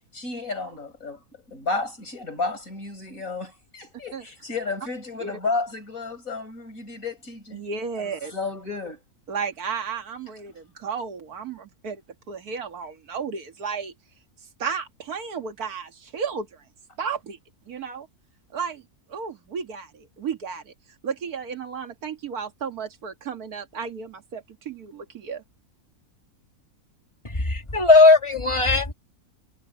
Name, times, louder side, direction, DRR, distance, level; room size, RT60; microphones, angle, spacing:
voice 1, 0.1-7.6 7.9-9.0, left 3 dB, 65° left, 6.3 m, -32 dB
voice 2, 7.5-8.3 9.3-12.0 12.3-13.9 14.6-16.6 17.0-17.4 17.7-18.1 18.5-18.8 19.1-20.7 21.0-25.4, right 6 dB, 80° right, 2.1 m, -33 dB
voice 3, 27.2-28.9, left 3 dB, 20° left, 1.7 m, -17 dB
omnidirectional pair, 1.6 m